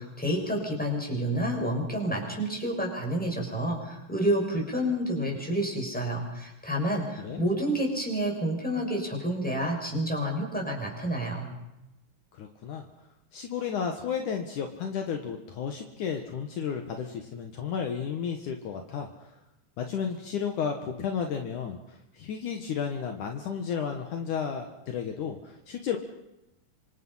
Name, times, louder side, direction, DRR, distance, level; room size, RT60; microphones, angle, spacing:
voice 1, 0.0-11.5, right 1 dB, ahead, 0 dB, 6.2 m, -29 dB
voice 2, 12.3-12.8 13.3-19.1 19.8-26.0, left 7 dB, 65° left, 4 dB, 2.9 m, -33 dB
27.0 x 25.0 x 5.7 m, 0.92 s
omnidirectional pair, 4.0 m